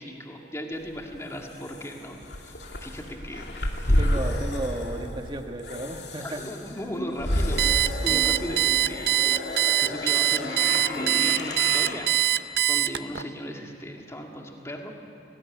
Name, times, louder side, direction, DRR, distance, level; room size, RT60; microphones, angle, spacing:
voice 1, 0.0-2.5 2.8-4.5 6.2-7.7 8.0-14.9, equal, 15° left, 1 dB, 2.0 m, -37 dB
sound 1, 0.9-11.9, left 1 dB, 75° left, 2.4 m, -30 dB
voice 2, 4.0-6.4, right 1 dB, 25° right, 5 dB, 1.3 m, -34 dB
sound 2, 6.4-11.5, left 1 dB, 35° left, 0.7 m, -40 dB
Alarm, 7.6-13.2, right 12 dB, 60° right, 0.5 m, -23 dB
19.5 x 19.0 x 9.7 m, 2.7 s
head